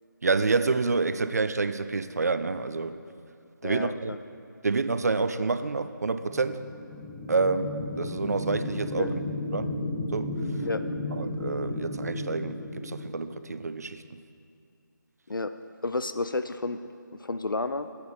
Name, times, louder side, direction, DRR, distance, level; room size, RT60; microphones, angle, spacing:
voice 1, 0.2-3.0 3.6-4.2 4.6-6.6 7.3-9.2 9.5-9.8 10.1-10.3 11.1-14.2, right 4 dB, 50° right, 11 dB, 0.4 m, -28 dB
voice 2, 3.6-4.2 9.0-9.1 10.6-10.8 15.3-15.5 15.8-16.8 17.2-17.9, left 3 dB, 85° left, 10 dB, 0.4 m, -30 dB
sound 1, 6.2-13.8, left 1 dB, 5° left, 0.4 m, -34 dB
9.1 x 8.4 x 4.6 m, 2.4 s
figure-of-eight pair, 155°, 11 cm